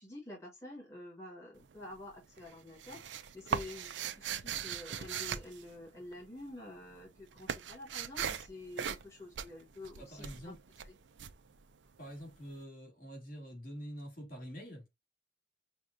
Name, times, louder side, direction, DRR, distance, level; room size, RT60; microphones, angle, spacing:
voice 1, 0.0-10.5 10.8-10.9, left 2 dB, 15° left, 1.5 m, -48 dB
Wooden box being opened and closed, 1.5-2.1 2.4-6.4 6.7-12.3, right 7 dB, 70° right, 0.5 m, -39 dB
voice 2, 10.0-10.6 12.0-14.9, equal, 45° left, 2.0 m, -46 dB
6.1 x 2.3 x 2.5 m
head